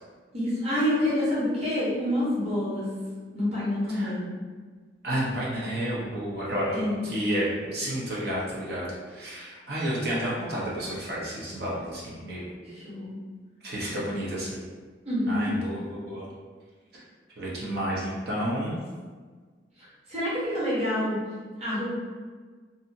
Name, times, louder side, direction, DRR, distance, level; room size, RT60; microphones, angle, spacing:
voice 1, 0.3-2.9 3.3-4.3 6.7-7.1 12.6-13.2 15.0-15.5 19.8-21.2 21.6-21.9, left 1 dB, 35° right, -9 dB, 1.0 m, -27 dB
voice 2, 5.0-12.5 13.6-14.6 15.3-16.3 16.9-17.0 17.4-18.8, equal, 60° right, -6 dB, 0.7 m, -31 dB
2.7 x 2.6 x 2.6 m, 1.5 s
head